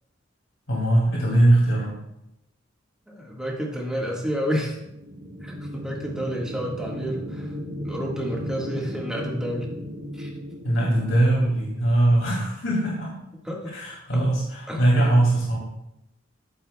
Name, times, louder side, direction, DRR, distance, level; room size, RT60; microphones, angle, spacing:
voice 1, 0.7-2.0 10.6-13.1 13.7-15.7, right 1 dB, 75° left, -4 dB, 2.6 m, -21 dB
voice 2, 3.1-4.8 5.4-7.5 7.8-9.7 10.2-10.3 13.4-13.6 14.7-14.8, equal, 5° right, -2 dB, 1.6 m, -30 dB
sound 1, 4.4-12.0, equal, 65° right, 1.8 m, -36 dB
11.0 x 8.7 x 2.3 m, 0.84 s
head